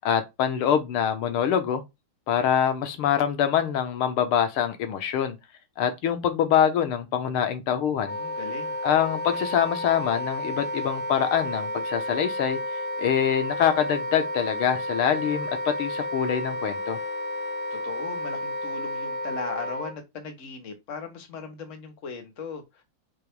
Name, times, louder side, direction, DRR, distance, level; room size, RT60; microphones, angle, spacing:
voice 1, 0.0-1.8 2.3-5.4 5.8-8.2 8.8-12.6 13.0-17.0, left 9 dB, 85° left, 1.9 m, -24 dB
Wind instrument woodwind instrument, 8.0-19.9, left 1 dB, 10° left, 0.4 m, -31 dB
voice 2, 8.1-8.7 17.7-22.8, left 5 dB, 40° left, 1.6 m, -38 dB
6.8 x 3.0 x 4.7 m
omnidirectional pair, 2.3 m